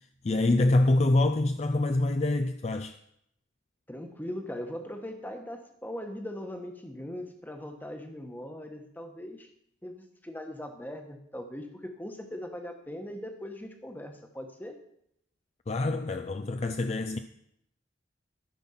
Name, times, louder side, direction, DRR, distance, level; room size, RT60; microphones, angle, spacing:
voice 1, 0.2-3.0 15.7-17.2, left 2 dB, 35° left, 0.4 m, -25 dB
voice 2, 3.9-9.5 9.8-14.8, left 1 dB, 10° left, 1.1 m, -40 dB
13.5 x 6.0 x 5.7 m
head